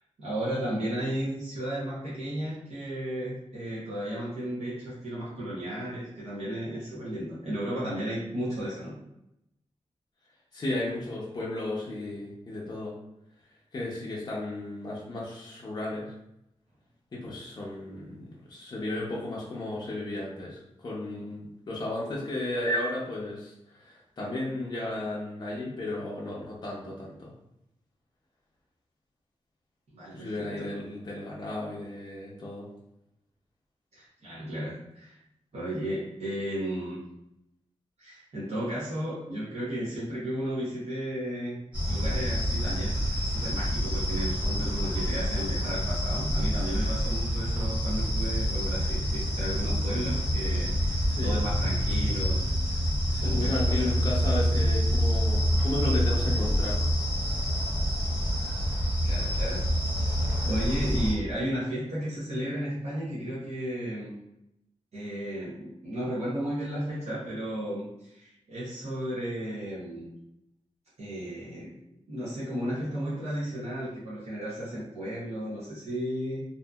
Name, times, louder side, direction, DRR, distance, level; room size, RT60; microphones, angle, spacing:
voice 1, 0.2-8.9 29.9-30.7 33.9-35.2 35.5-37.0 38.0-41.6 41.9-52.4 53.2-53.9 59.0-59.6 60.0-60.2 60.4-64.1 64.9-70.1 71.0-71.7 72.1-76.4, equal, 65° right, -9 dB, 0.8 m, -34 dB
voice 2, 10.5-12.9 13.7-16.1 17.1-27.3 30.1-32.7 51.1-51.4 53.1-56.8, left 1 dB, 35° left, -5 dB, 0.5 m, -34 dB
sound 1, 41.7-61.1, equal, 10° right, 1.1 m, -27 dB
2.7 x 2.4 x 2.3 m, 0.84 s
wide cardioid pair, 180°, 12 cm